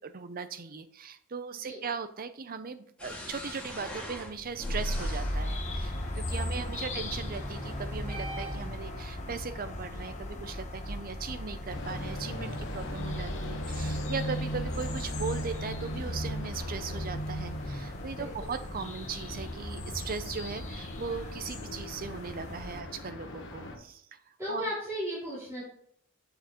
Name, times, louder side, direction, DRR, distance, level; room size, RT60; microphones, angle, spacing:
voice 1, 0.0-24.2 24.5-24.7, right 5 dB, 40° right, 12 dB, 0.5 m, -38 dB
sound 1, 3.0-8.7, equal, 5° left, 1.9 m, -37 dB
sound 2, 4.9-22.8, left 1 dB, 35° left, 1.0 m, -39 dB
voice 2, 6.5-6.9 18.1-18.3 24.4-25.6, equal, 15° right, -11 dB, 2.9 m, -36 dB
sound 3, 11.7-23.8, equal, 60° left, 1.2 m, -38 dB
6.9 x 6.3 x 3.0 m, 0.68 s
head